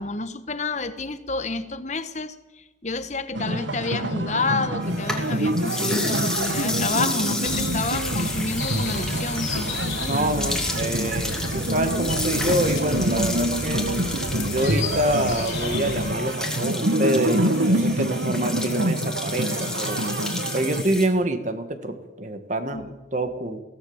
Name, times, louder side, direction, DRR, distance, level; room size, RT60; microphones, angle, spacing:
voice 1, 0.0-9.6 22.7-22.9, left 3 dB, 35° left, 11 dB, 1.3 m, -29 dB
sound 1, 3.3-20.8, right 1 dB, 70° right, 1.5 m, -26 dB
sound 2, 4.8-21.1, left 2 dB, 5° left, 2.6 m, -32 dB
sound 3, 7.4-16.1, left 3 dB, 85° left, 3.6 m, -33 dB
voice 2, 10.0-13.9 14.4-20.1 20.5-23.6, right 1 dB, 40° right, 8 dB, 1.9 m, -26 dB
23.0 x 17.0 x 7.3 m, 1.1 s
head